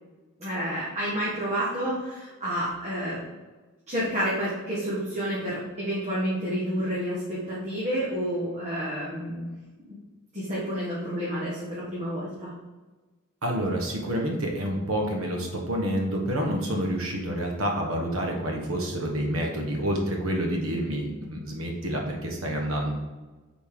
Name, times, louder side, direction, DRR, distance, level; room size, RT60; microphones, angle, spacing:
voice 1, 0.4-3.2 3.9-9.5 9.9-10.0 10.3-12.5, equal, 30° right, -7 dB, 1.5 m, -29 dB
voice 2, 13.4-22.9, equal, 70° right, 1 dB, 1.4 m, -28 dB
8.4 x 4.2 x 3.7 m, 1.2 s
head